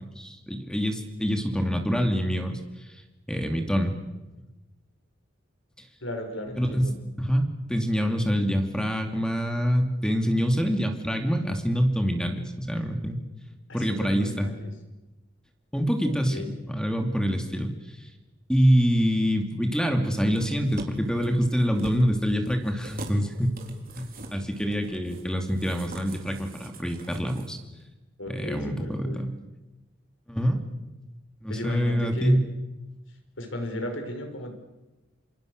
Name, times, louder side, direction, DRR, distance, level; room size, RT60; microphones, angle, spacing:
voice 1, 0.2-2.6 3.3-3.9 6.6-6.9 7.2-13.2 13.7-14.5 15.7-17.7 18.5-23.6 23.9-27.6 28.3-29.3 30.3-30.6 31.4-32.4, equal, 5° left, 5 dB, 2.5 m, -25 dB
voice 2, 6.0-7.0 13.7-14.7 16.3-16.5 28.2-29.3 31.5-32.3 33.4-34.5, left 1 dB, 80° left, 5 dB, 5.9 m, -35 dB
sound 1, 20.3-27.5 27.8-27.9, right 1 dB, 50° right, 4.0 m, -42 dB
27.5 x 27.5 x 6.6 m, 1.1 s
head